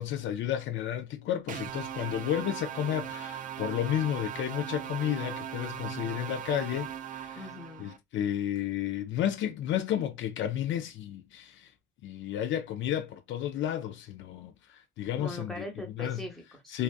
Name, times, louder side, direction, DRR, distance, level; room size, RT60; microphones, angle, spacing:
voice 1, 0.0-7.4 7.8-11.7 12.0-15.6 16.0-16.2 16.7-16.8, left 10 dB, 70° left, 0.4 m, -32 dB
sound 1, 1.5-8.0, right 10 dB, 40° right, 0.4 m, -39 dB
voice 2, 7.4-7.9 15.1-16.8, left 1 dB, ahead, 0.9 m, -41 dB
2.5 x 2.3 x 2.2 m
cardioid pair, 90°, 20 cm